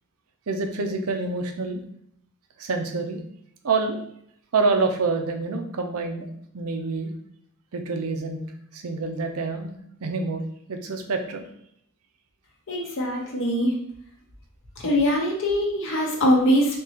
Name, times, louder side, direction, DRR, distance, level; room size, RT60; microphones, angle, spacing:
voice 1, 0.5-1.8 2.6-3.2 3.6-4.0 4.5-6.3 6.5-7.1 7.7-8.4 8.7-9.7 10.0-10.4 10.7-11.4, right 3 dB, 85° right, 5 dB, 0.5 m, -26 dB
voice 2, 12.7-13.7 14.8-16.8, equal, 60° left, -1 dB, 0.7 m, -22 dB
3.6 x 2.8 x 2.8 m, 0.69 s
head